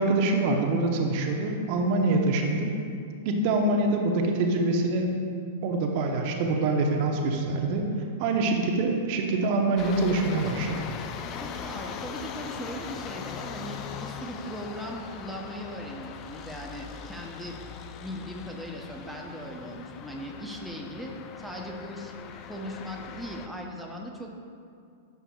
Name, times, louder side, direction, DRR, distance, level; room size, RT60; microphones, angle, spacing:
voice 1, 0.0-2.7 3.2-5.1 5.6-7.9 8.2-10.7, right 2 dB, 45° right, 2 dB, 0.9 m, -25 dB
sound 1, 9.8-23.5, left 7 dB, 35° left, 0.5 m, -40 dB
voice 2, 11.3-17.6 18.0-22.1 22.5-24.3, equal, ahead, -1 dB, 0.8 m, -39 dB
11.0 x 6.7 x 2.4 m, 2.3 s
figure-of-eight pair, 100°, 0 cm